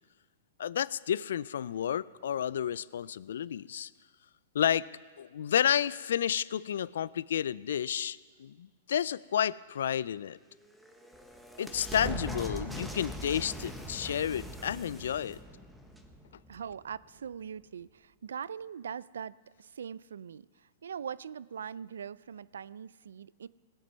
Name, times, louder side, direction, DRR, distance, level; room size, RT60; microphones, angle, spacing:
voice 1, 0.6-3.9 4.5-4.9 5.2-10.4 11.6-15.4, left 9 dB, 75° left, 21 dB, 0.3 m, -31 dB
sound 1, 10.5-17.0, right 1 dB, ahead, 1.1 m, -42 dB
voice 2, 16.5-23.5, right 7 dB, 85° right, 20 dB, 0.3 m, -42 dB
19.0 x 7.9 x 5.6 m, 1.5 s
hypercardioid pair, 130°, 0 cm